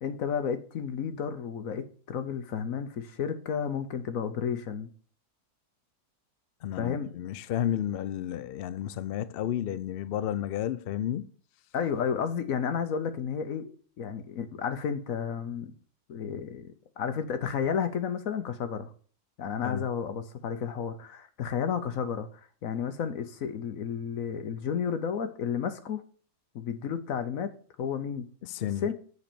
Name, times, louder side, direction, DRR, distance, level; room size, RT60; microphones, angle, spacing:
voice 1, 0.0-4.9 6.7-7.1 11.7-13.7 14.0-15.7 16.1-18.9 19.4-22.3 22.6-26.0 26.5-27.5 27.8-28.3 28.8-28.9, left 7 dB, 65° left, 1.1 m, -32 dB
voice 2, 6.6-11.3 19.6-19.8 28.4-28.9, left 11 dB, 90° left, 0.5 m, -32 dB
8.0 x 4.3 x 6.8 m
omnidirectional pair, 1.6 m